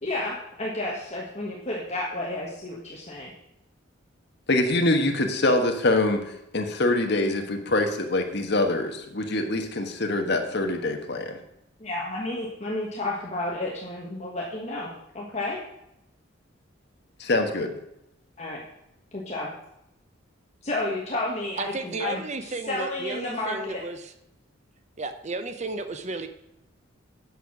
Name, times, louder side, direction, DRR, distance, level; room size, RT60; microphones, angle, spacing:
voice 1, 0.0-3.3 11.8-15.6 18.4-18.6 19.1-19.5 20.6-22.2 22.7-23.8, left 2 dB, 35° left, -3 dB, 1.5 m, -31 dB
voice 2, 4.5-11.4 17.2-17.7, left 2 dB, 55° left, 4 dB, 1.4 m, -24 dB
voice 3, 21.6-24.1 25.0-26.3, right 3 dB, 35° right, 9 dB, 0.6 m, -33 dB
9.2 x 6.6 x 6.0 m, 0.83 s
head